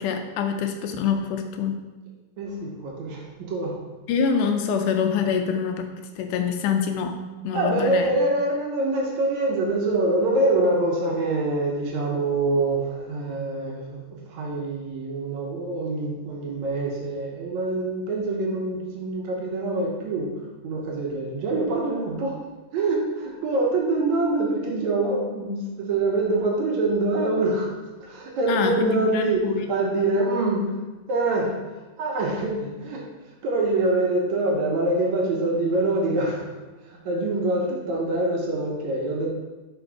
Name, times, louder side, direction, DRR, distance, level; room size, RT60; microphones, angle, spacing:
voice 1, 0.0-1.8 4.1-7.2 7.4-8.2 28.5-29.6, left 6 dB, 80° left, 5 dB, 1.9 m, -25 dB
voice 2, 2.4-3.8 7.5-22.4 22.7-27.7 28.0-30.8 31.1-33.0 33.4-39.3, right 2 dB, 70° right, -1 dB, 2.0 m, -25 dB
5.3 x 5.0 x 4.6 m, 1.2 s
omnidirectional pair, 3.9 m